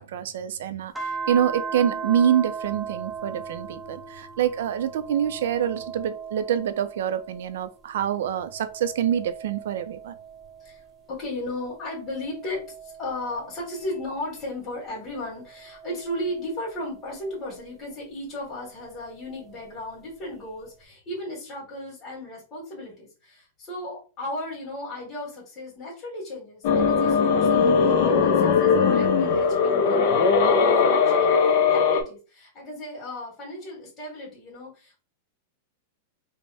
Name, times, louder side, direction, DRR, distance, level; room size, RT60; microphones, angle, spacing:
voice 1, 0.0-10.2, right 9 dB, 70° right, 11 dB, 0.5 m, -26 dB
sound 1, 1.0-7.7 8.1-11.0 11.6-14.4 15.1-17.6 18.9-20.0, right 5 dB, 5° right, 0.6 m, -39 dB
voice 2, 11.1-31.3 31.7-35.0, left 1 dB, 25° left, -3 dB, 1.7 m, -35 dB
sound 2, 26.6-32.0, left 5 dB, 50° left, 0.7 m, -19 dB
3.4 x 2.1 x 4.1 m, 0.34 s
supercardioid pair, 160°, 0 cm